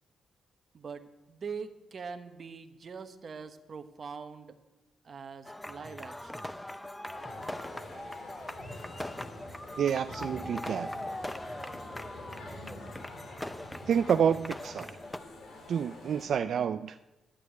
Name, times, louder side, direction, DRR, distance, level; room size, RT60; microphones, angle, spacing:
voice 1, 0.7-4.6 5.0-6.5, right 5 dB, 45° right, 8 dB, 1.2 m, -43 dB
sound 1, 5.4-15.2, left 1 dB, 10° left, 0.6 m, -41 dB
sound 2, 7.1-16.3, left 2 dB, 70° left, 3.2 m, -48 dB
sound 3, 7.3-14.5, equal, 35° left, 3.3 m, -50 dB
voice 2, 9.8-10.9 13.9-15.0 15.7-17.0, right 8 dB, 65° right, 9 dB, 0.4 m, -28 dB
11.5 x 8.4 x 9.4 m, 1.0 s
cardioid pair, 110°, 0 cm